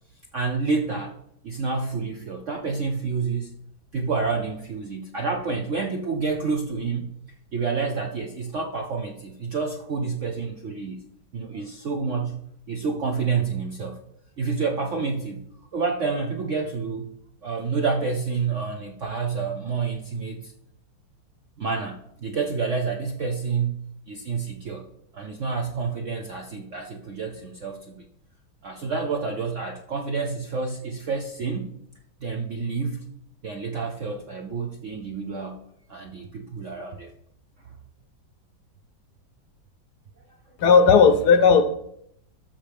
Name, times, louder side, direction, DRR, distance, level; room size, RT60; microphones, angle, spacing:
voice 1, 0.3-1.1 1.4-3.5 3.9-7.1 7.5-11.0 11.3-12.4 12.7-14.0 14.4-15.4 15.7-17.1 17.4-20.5 21.6-24.9 25.1-28.0 28.6-31.8 32.2-33.1 33.4-35.6 35.9-37.1, right 4 dB, 65° right, 2 dB, 0.7 m, -28 dB
voice 2, 40.6-41.6, left 5 dB, 65° left, 8 dB, 1.1 m, -15 dB
13.0 x 6.6 x 3.5 m, 0.74 s
omnidirectional pair, 2.1 m